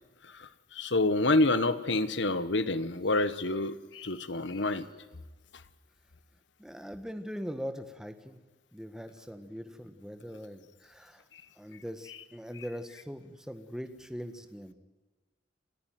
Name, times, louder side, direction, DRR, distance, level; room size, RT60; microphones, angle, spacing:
voice 1, 0.3-4.9, left 2 dB, 70° left, 13 dB, 1.4 m, -28 dB
voice 2, 6.6-8.4 8.7-11.2 11.6-14.7, equal, 5° right, 7 dB, 1.6 m, -41 dB
29.0 x 14.0 x 9.4 m, 1.3 s
head